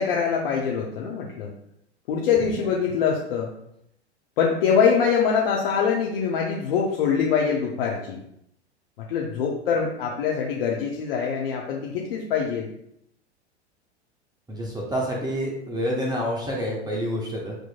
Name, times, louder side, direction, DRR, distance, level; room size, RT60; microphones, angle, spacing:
voice 1, 0.0-1.5 2.1-3.5 4.4-8.2 9.1-12.7, left 6 dB, 55° left, -2 dB, 0.8 m, -24 dB
voice 2, 14.5-17.6, equal, 10° right, -2 dB, 0.9 m, -28 dB
7.8 x 3.0 x 2.2 m, 0.76 s
figure-of-eight pair, 90°, 34 cm